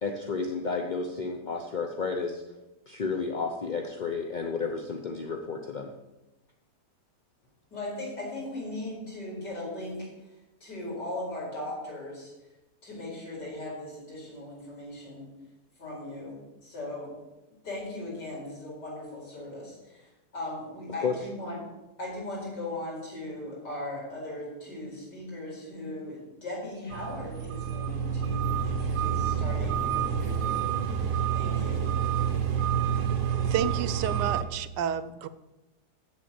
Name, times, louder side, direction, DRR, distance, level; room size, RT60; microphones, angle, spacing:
voice 1, 0.0-2.4 2.9-5.9 21.0-21.2, left 4 dB, 40° left, 3 dB, 0.7 m, -31 dB
voice 2, 7.7-10.1 10.6-12.3 12.8-15.3 15.8-16.4 16.6-17.1 17.6-21.6 22.0-31.1 31.3-31.8, left 1 dB, 80° left, -4 dB, 5.5 m, -38 dB
sound 1, 26.9-34.4, right 8 dB, 70° right, 1.6 m, -28 dB
voice 3, 33.5-35.3, right 8 dB, 90° right, 14 dB, 1.3 m, -30 dB
8.1 x 8.0 x 8.7 m, 1.0 s
omnidirectional pair, 1.8 m